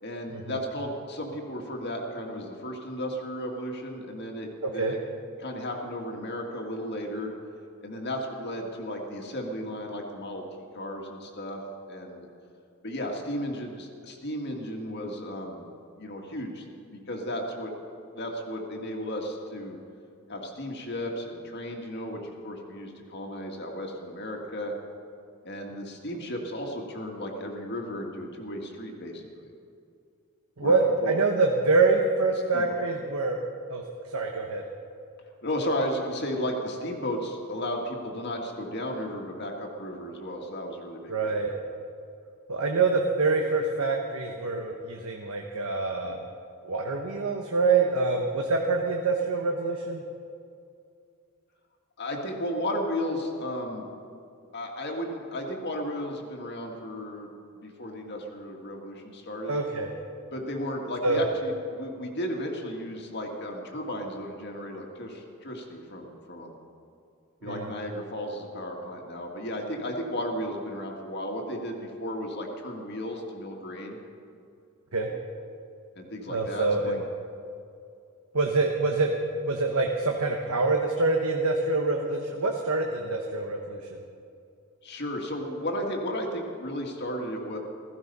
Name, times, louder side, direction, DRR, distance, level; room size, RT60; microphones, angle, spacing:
voice 1, 0.0-5.0 5.4-7.3 7.8-10.4 10.7-11.6 11.9-12.3 12.8-15.7 16.0-16.6 16.9-17.7 18.1-19.8 20.3-24.7 25.4-29.5 30.6-31.1 32.5-32.8 35.4-41.4 52.0-53.9 54.5-59.6 60.3-66.5 67.4-74.0 75.9-77.0 84.8-87.6, equal, 50° left, 1 dB, 1.9 m, -34 dB
voice 2, 4.6-4.9 30.6-33.4 33.7-33.8 34.1-34.6 41.1-41.5 42.5-46.2 46.6-50.0 59.4-59.9 61.0-61.2 67.5-67.7 74.9-75.1 76.3-77.0 78.3-79.1 79.4-83.8, right 3 dB, 80° right, 2 dB, 1.2 m, -25 dB
16.0 x 15.0 x 5.5 m, 2.5 s
head